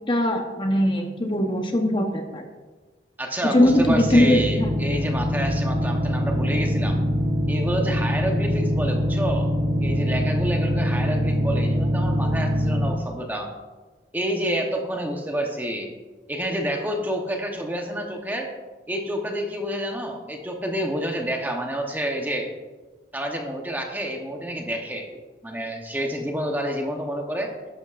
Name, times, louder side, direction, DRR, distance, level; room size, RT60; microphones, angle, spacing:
voice 1, 0.1-2.4 3.4-4.7, left 1 dB, 25° left, 4 dB, 0.9 m, -21 dB
voice 2, 3.2-7.0 7.5-9.5 9.8-13.5 14.1-15.9 16.3-18.5 18.9-22.5 23.1-27.5, right 1 dB, 10° right, 2 dB, 0.9 m, -29 dB
sound 1, 3.6-12.9, equal, 45° right, 1.0 m, -23 dB
11.5 x 11.5 x 2.5 m, 1.3 s
head